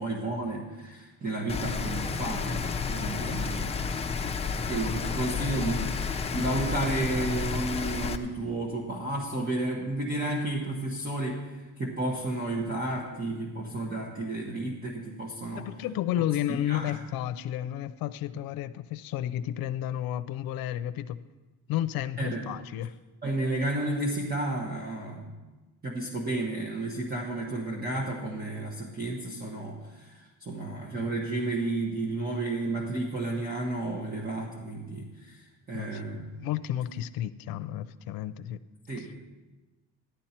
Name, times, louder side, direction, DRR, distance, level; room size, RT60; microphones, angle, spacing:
voice 1, 0.0-3.8 4.7-5.8 6.3-15.7 16.6-16.9 22.2-22.4 23.2-25.3 25.8-36.2 38.9-39.2, right 2 dB, 25° right, 1.4 m, -32 dB
Rain, 1.5-8.2, left 5 dB, 20° left, 0.6 m, -31 dB
voice 2, 5.2-6.1 15.5-21.2 21.7-23.0 35.7-38.6 39.0-39.1, left 12 dB, 85° left, 0.6 m, -32 dB
13.5 x 11.5 x 4.4 m
cardioid pair, 150°, 35 cm